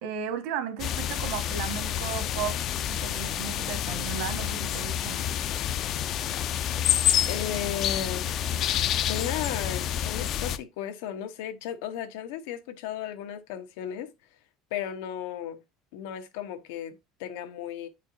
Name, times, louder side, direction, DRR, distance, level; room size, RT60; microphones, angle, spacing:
voice 1, 0.0-2.6 2.9-5.2, right 8 dB, 70° right, 1.3 m, -35 dB
sound 1, 0.8-10.6, left 10 dB, 40° left, 0.4 m, -28 dB
voice 2, 7.3-8.3 8.7-14.1 14.7-15.6 15.9-17.9, left 10 dB, 85° left, 0.9 m, -35 dB
8.4 x 4.5 x 2.6 m
cardioid pair, 155°, 0 cm